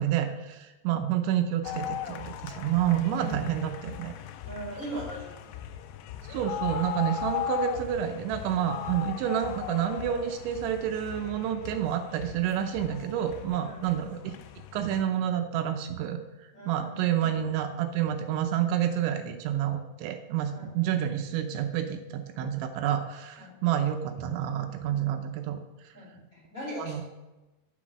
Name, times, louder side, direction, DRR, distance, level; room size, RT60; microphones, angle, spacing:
voice 1, 0.0-4.1 6.2-14.3 14.7-25.6 26.8-27.0, right 10 dB, 80° right, 6 dB, 2.9 m, -29 dB
sound 1, 1.6-15.0, left 11 dB, 85° left, 2.8 m, -38 dB
voice 2, 3.2-3.7 4.4-5.3 13.6-13.9 16.5-17.3 20.5-20.9 23.4-23.7 25.9-27.0, equal, 20° left, -5 dB, 2.3 m, -40 dB
11.0 x 6.0 x 6.1 m, 1.1 s
omnidirectional pair, 5.4 m